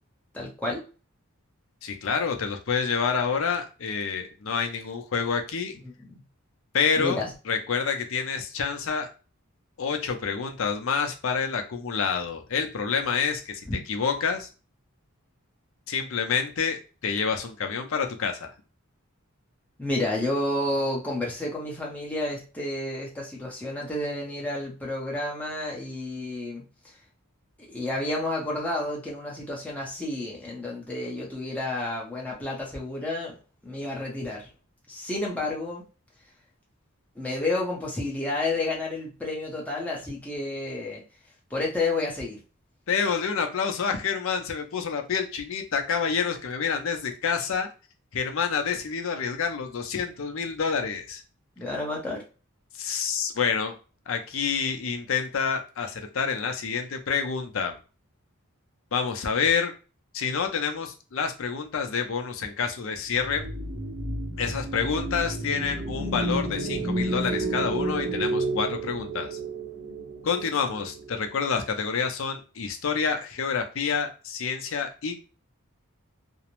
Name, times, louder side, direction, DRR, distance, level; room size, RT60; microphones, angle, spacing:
voice 1, 0.3-0.8 6.1-6.2 7.0-7.3 13.7-13.8 19.8-26.6 27.7-33.3 33.6-34.4 34.9-35.8 37.2-41.0 41.5-42.4 51.6-52.2, left 2 dB, 5° left, -4 dB, 0.6 m, -30 dB
voice 2, 1.8-5.7 6.7-9.1 9.8-13.6 13.9-14.5 15.9-16.8 17.0-18.5 42.9-47.7 48.1-51.2 52.7-53.7 54.1-57.8 58.9-59.7 60.1-63.4 64.4-69.4 70.2-75.2, left 6 dB, 65° left, 5 dB, 0.5 m, -28 dB
sound 1, 63.1-71.5, right 2 dB, 55° right, 0.6 m, -31 dB
2.5 x 2.0 x 3.0 m, 0.34 s
head